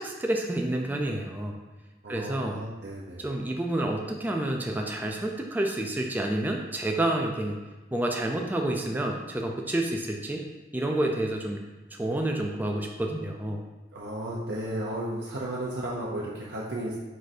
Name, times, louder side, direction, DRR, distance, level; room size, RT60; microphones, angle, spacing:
voice 1, 0.0-1.6 2.1-2.6 3.2-7.6 7.9-10.5 10.7-11.6 12.0-13.6, right 1 dB, 10° right, 1 dB, 0.3 m, -29 dB
voice 2, 2.0-3.3 13.9-17.0, right 1 dB, 65° right, -5 dB, 0.6 m, -34 dB
4.8 x 2.6 x 4.1 m, 1.2 s
head